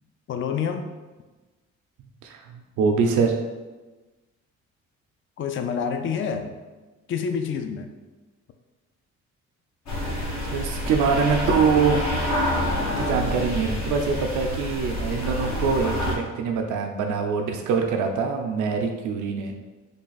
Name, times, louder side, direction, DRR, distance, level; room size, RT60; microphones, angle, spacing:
voice 1, 0.3-0.9 5.4-6.6 7.1-7.9, left 6 dB, 45° left, 7 dB, 0.4 m, -27 dB
voice 2, 2.2-3.4 10.0-12.3 13.0-19.5, right 5 dB, 80° right, 3 dB, 0.5 m, -24 dB
sound 1, 9.9-16.1, left 1 dB, 65° left, 1.1 m, -27 dB
3.3 x 2.3 x 3.9 m, 1.2 s
cardioid pair, 90°, 30 cm